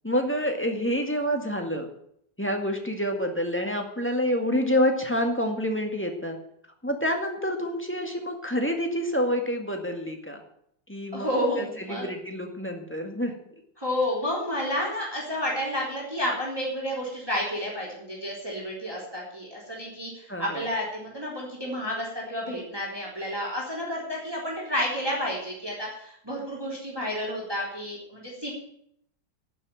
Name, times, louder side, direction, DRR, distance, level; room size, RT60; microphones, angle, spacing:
voice 1, 0.0-1.9 2.4-6.4 6.8-10.4 10.9-11.3 11.6-13.4 20.3-20.6, equal, 5° left, 3 dB, 1.8 m, -27 dB
voice 2, 11.1-12.1 13.8-28.5, equal, 10° right, -4 dB, 3.6 m, -30 dB
11.5 x 7.7 x 9.2 m, 0.69 s
omnidirectional pair, 2.0 m